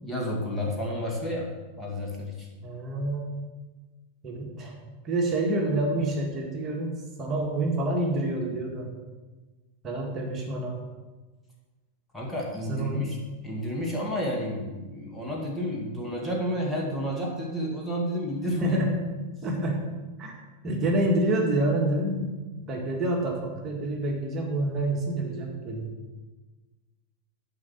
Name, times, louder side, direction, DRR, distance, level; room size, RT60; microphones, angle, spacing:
voice 1, 0.0-1.5 1.8-2.5 12.1-13.2 13.4-18.8, equal, 5° left, -2 dB, 1.9 m, -31 dB
voice 2, 2.6-3.3 4.2-8.9 9.8-10.8 12.7-13.1 18.6-19.0 19.4-19.8 20.2-20.3 20.6-25.9, right 1 dB, 25° right, 0 dB, 2.0 m, -28 dB
10.5 x 5.1 x 6.6 m, 1.2 s
figure-of-eight pair, 90°, 0 cm